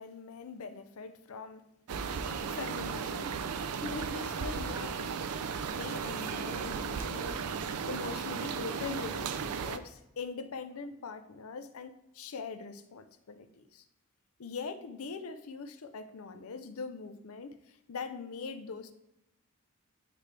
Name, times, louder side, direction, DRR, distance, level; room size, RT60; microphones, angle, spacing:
voice 1, 0.0-1.6 2.5-3.4 3.8-5.2 5.7-7.5 7.8-13.8 14.4-18.9, left 4 dB, 70° left, 10 dB, 0.5 m, -42 dB
sound 1, 1.9-9.8, right 6 dB, 85° right, 0.4 m, -35 dB
8.9 x 3.2 x 3.3 m, 0.88 s
head